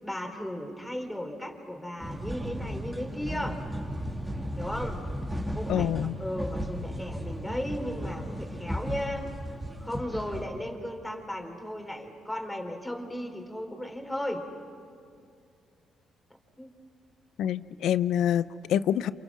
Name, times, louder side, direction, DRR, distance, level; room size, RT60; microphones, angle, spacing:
voice 1, 0.0-3.7 4.6-5.0 5.5-9.3 9.8-14.5 16.6-16.7, left 1 dB, 10° left, 3 dB, 3.7 m, -35 dB
sound 1, 2.0-10.5, equal, 10° right, 2.2 m, -35 dB
voice 2, 5.7-6.2 17.4-19.1, left 10 dB, 80° left, 15 dB, 0.6 m, -26 dB
29.0 x 28.0 x 6.2 m, 2.3 s
cardioid pair, 90°, 0 cm